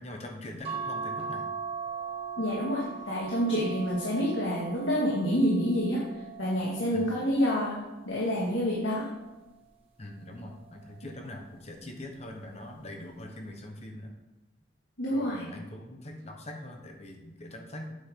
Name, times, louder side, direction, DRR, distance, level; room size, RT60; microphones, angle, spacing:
voice 1, 0.0-1.6 6.9-7.3 10.0-14.1 15.1-18.0, left 1 dB, 35° left, 2 dB, 1.1 m, -42 dB
sound 1, 0.6-7.3 7.9-9.3 10.5-11.0 11.3-11.4, right 5 dB, 30° right, 1.8 m, -40 dB
voice 2, 2.4-6.0 6.4-7.8 8.1-9.1 15.0-15.4, equal, 75° left, -5 dB, 2.0 m, -28 dB
8.6 x 7.9 x 3.8 m, 1.1 s
head